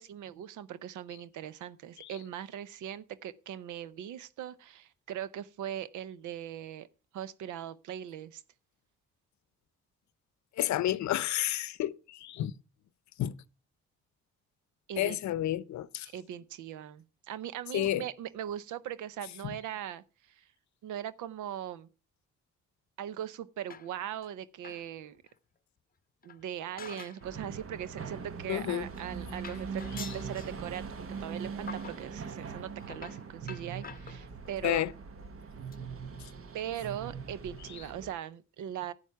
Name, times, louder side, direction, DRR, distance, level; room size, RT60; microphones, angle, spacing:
voice 1, 0.0-6.9 7.1-8.4 14.9-15.2 16.0-20.0 20.4-20.5 20.8-21.9 23.0-25.2 26.2-34.8 36.5-38.9, right 10 dB, 80° right, 0.8 m, -40 dB
voice 2, 10.6-12.5 13.2-13.3 15.0-16.1 17.7-18.1 19.4-19.6 28.5-28.9 30.0-30.1 34.6-34.9 36.2-36.3 37.7-37.8, left 13 dB, 70° left, 0.7 m, -31 dB
sound 1, 23.7-24.3 24.6-24.9 25.3-25.4 26.2-27.3 27.6-27.8 28.6-28.7 29.0-29.1 29.4-30.6 31.1-31.3 31.7-32.1 32.8-34.6 35.2-35.4 35.7-35.8 36.1-36.2 36.4-36.5, left 6 dB, 30° left, 0.8 m, -47 dB
sound 2, 27.2-38.1, right 5 dB, 45° right, 1.2 m, -41 dB
11.0 x 8.8 x 4.7 m
cardioid pair, 90°, 30 cm